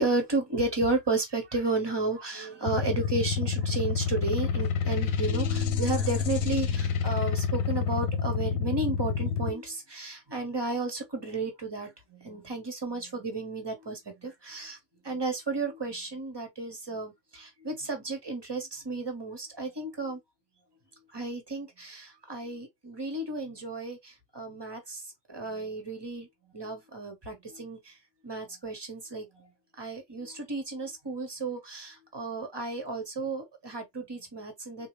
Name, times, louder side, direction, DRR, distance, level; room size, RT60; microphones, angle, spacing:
voice 1, 0.0-14.8 15.0-20.2 21.1-26.3 26.5-28.0 28.2-29.5 29.8-34.9, right 3 dB, 20° right, 0.9 m, -33 dB
sound 1, 2.7-9.5, left 6 dB, 80° left, 1.0 m, -28 dB
3.9 x 2.3 x 3.1 m
omnidirectional pair, 1.4 m